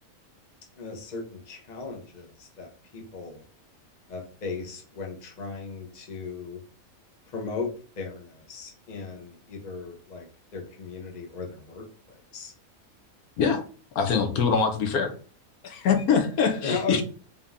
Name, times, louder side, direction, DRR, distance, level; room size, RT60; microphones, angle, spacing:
voice 1, 0.8-3.4 4.1-6.6 7.3-7.7 7.9-10.3 10.5-12.5 16.6-17.0, left 4 dB, 35° left, 1 dB, 0.9 m, -36 dB
voice 2, 13.9-15.1 15.6-17.0, left 6 dB, 80° left, 5 dB, 1.2 m, -23 dB
3.6 x 2.8 x 3.6 m, 0.39 s
omnidirectional pair, 1.5 m